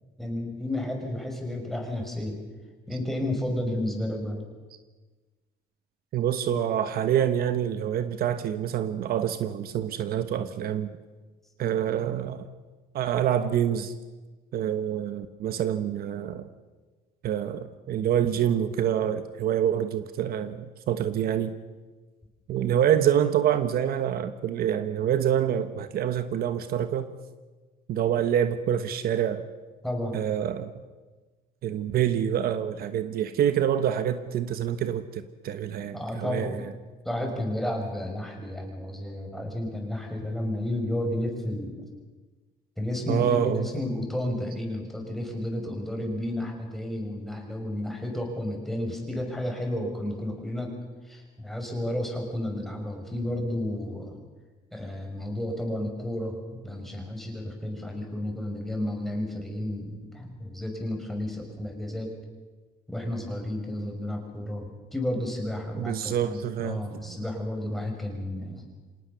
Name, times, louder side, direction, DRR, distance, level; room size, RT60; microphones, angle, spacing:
voice 1, 0.2-2.4 2.9-4.4 29.8-30.2 35.9-36.6 37.0-41.8 42.8-50.7 51.0-54.1 54.7-62.1 62.9-68.6, left 1 dB, ahead, 1 dB, 6.2 m, -32 dB
voice 2, 6.1-10.9 11.6-12.5 12.9-13.9 14.5-16.5 17.2-21.5 22.5-27.1 27.9-29.4 30.1-30.7 31.6-36.7 43.1-43.7 65.7-66.8 67.1-67.2, right 10 dB, 65° right, 11 dB, 1.2 m, -26 dB
26.0 x 18.5 x 6.9 m, 1.3 s
cardioid pair, 110°, 17 cm